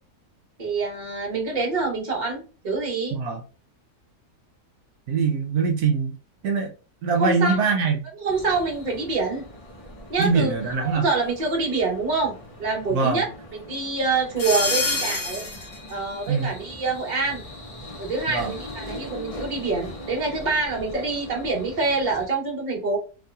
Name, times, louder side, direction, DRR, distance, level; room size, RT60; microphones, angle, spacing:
voice 1, 0.6-3.2 7.2-7.6 8.2-9.4 10.1-10.5 10.8-13.3 13.5-15.4 15.9-17.4 18.0-23.0, right 3 dB, 35° right, 1.1 m, -26 dB
voice 2, 5.1-6.1 6.4-6.7 7.0-8.0 10.2-11.1 12.9-13.2 16.3-16.5 18.3-18.5, right 5 dB, 75° right, 1.1 m, -23 dB
sound 1, 8.3-22.3, left 2 dB, 45° left, 0.4 m, -35 dB
3.0 x 2.7 x 2.2 m
omnidirectional pair, 1.7 m